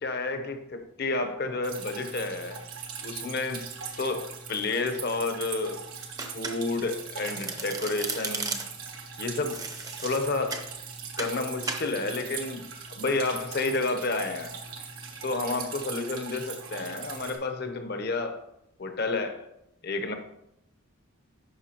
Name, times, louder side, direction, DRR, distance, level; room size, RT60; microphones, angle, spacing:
voice 1, 0.0-2.6 3.0-3.7 4.0-5.8 6.3-8.6 9.2-9.6 10.0-10.7 11.2-12.6 12.9-14.5 15.2-18.4 18.8-19.5 19.8-20.2, left 3 dB, 50° left, 7 dB, 0.8 m, -30 dB
Drip, 1.6-17.4, right 6 dB, 90° right, 1.3 m, -40 dB
Domestic sounds home sounds, 6.2-6.9 7.2-8.9 9.5-10.7 11.2-11.4 11.7-11.9, right 4 dB, 20° right, 0.6 m, -35 dB
11.5 x 4.8 x 2.9 m, 0.80 s
head